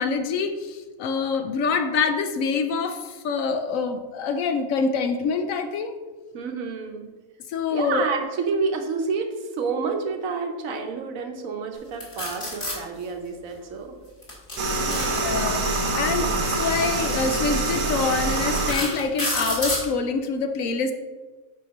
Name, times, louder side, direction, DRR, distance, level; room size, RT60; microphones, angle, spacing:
voice 1, 0.0-5.9 7.5-8.1 15.2-15.6 15.9-20.9, left 4 dB, 70° left, 8 dB, 0.9 m, -25 dB
voice 2, 6.3-7.1 7.7-13.9 14.8-15.7 16.1-16.3, right 4 dB, 65° right, 4 dB, 1.2 m, -29 dB
sound 1, 12.0-12.8 14.2-15.7 16.8-17.0 17.6-17.7 18.3-19.9, left 1 dB, 35° left, 2.5 m, -28 dB
sound 2, 14.6-18.7, right 2 dB, 85° right, 1.6 m, -25 dB
5.7 x 4.9 x 5.2 m, 1.3 s
omnidirectional pair, 1.6 m